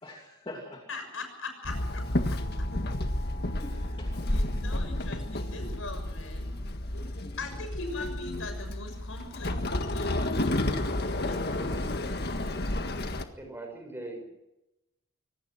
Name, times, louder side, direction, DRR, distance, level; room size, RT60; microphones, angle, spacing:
voice 1, 0.0-0.8 3.6-4.3 6.9-7.5, left 1 dB, 25° left, 0 dB, 2.8 m, -45 dB
voice 2, 0.9-2.0 2.3-2.4 4.3-6.5 6.9-7.0 7.4-10.8 11.0-11.7, left 3 dB, 65° left, 6 dB, 6.5 m, -41 dB
Walk footsteps / Chatter / Hiss, 1.6-13.2, left 1 dB, 50° left, 1.8 m, -31 dB
voice 3, 13.4-14.3, right 2 dB, 10° right, 3 dB, 6.1 m, -40 dB
24.5 x 18.5 x 6.3 m, 0.92 s
head